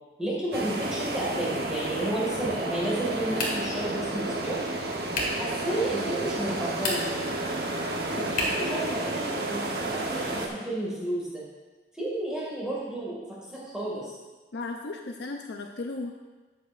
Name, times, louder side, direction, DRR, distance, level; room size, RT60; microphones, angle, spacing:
voice 1, 0.2-4.6 5.3-7.0 8.3-11.4 11.9-13.2 13.5-14.1, right 1 dB, 5° right, -7 dB, 2.1 m, -31 dB
sound 1, 0.5-10.5, right 2 dB, 60° right, 1.0 m, -31 dB
sound 2, 3.3-3.8 5.1-5.5 6.7-7.3 8.3-8.7, left 2 dB, 50° left, 1.8 m, -30 dB
voice 2, 8.1-8.5 14.5-16.1, left 3 dB, 80° left, 3 dB, 0.6 m, -36 dB
12.5 x 8.2 x 2.6 m, 1.3 s
head